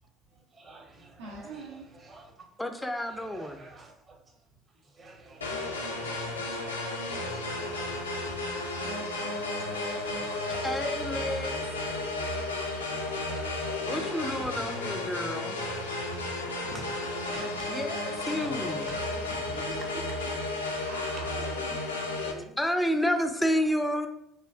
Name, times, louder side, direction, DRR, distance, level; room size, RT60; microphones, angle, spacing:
voice 1, 0.0-2.6 2.9-8.9 9.2-15.5 16.1-20.4 21.2-21.3 23.5-23.9, right 2 dB, 35° right, 0.8 m, -49 dB
voice 2, 1.2-1.9 19.3-19.7 20.6-22.6, right 3 dB, 75° right, 0.6 m, -45 dB
voice 3, 2.6-3.6 10.6-11.5 13.9-15.6 17.7-18.0 18.3-18.9 22.2-22.3 22.6-24.1, equal, 5° left, 0.3 m, -30 dB
sound 1, 5.4-22.3, left 2 dB, 85° left, 0.3 m, -33 dB
3.1 x 2.3 x 2.3 m
figure-of-eight pair, 60°, 0 cm